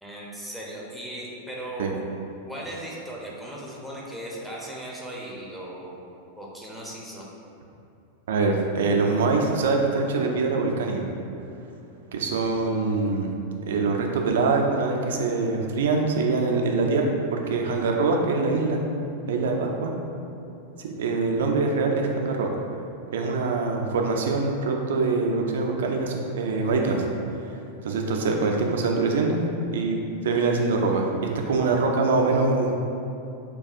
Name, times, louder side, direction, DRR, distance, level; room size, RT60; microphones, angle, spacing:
voice 1, 0.0-2.0 2.4-6.0 6.4-7.3, right 1 dB, ahead, -5 dB, 0.8 m, -37 dB
voice 2, 8.3-11.0 12.1-13.3 13.7-18.8 19.3-19.9 20.8-22.5 23.1-27.1 27.8-29.4 29.7-31.1 31.5-32.7, right 3 dB, 60° right, 2 dB, 0.4 m, -24 dB
6.7 x 2.3 x 2.5 m, 2.7 s
figure-of-eight pair, 90°, 0 cm